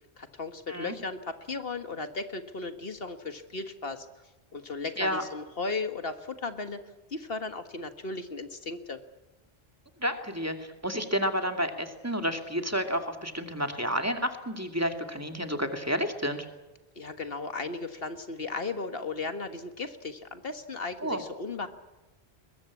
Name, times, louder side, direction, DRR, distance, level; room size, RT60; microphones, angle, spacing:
voice 1, 0.2-4.1 4.5-6.8 7.1-9.0 17.0-21.7, left 3 dB, 65° left, 9 dB, 1.7 m, -36 dB
voice 2, 10.0-16.5 21.0-21.2, equal, 15° right, 6 dB, 2.4 m, -30 dB
22.0 x 21.5 x 8.5 m, 1.1 s
omnidirectional pair, 1.0 m